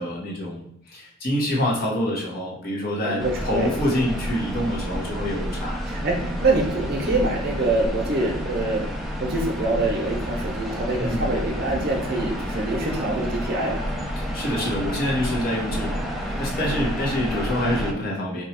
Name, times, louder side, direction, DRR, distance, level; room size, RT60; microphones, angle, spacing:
voice 1, 0.0-5.8 11.0-11.2 14.2-18.4, left 1 dB, 45° left, -3 dB, 0.8 m, -26 dB
voice 2, 3.0-3.7 5.9-8.8 9.2-13.8 16.6-16.9, right 2 dB, 45° right, 0 dB, 0.7 m, -25 dB
sound 1, 3.2-17.9, equal, ahead, 0.3 m, -30 dB
2.9 x 2.3 x 4.2 m, 0.72 s
head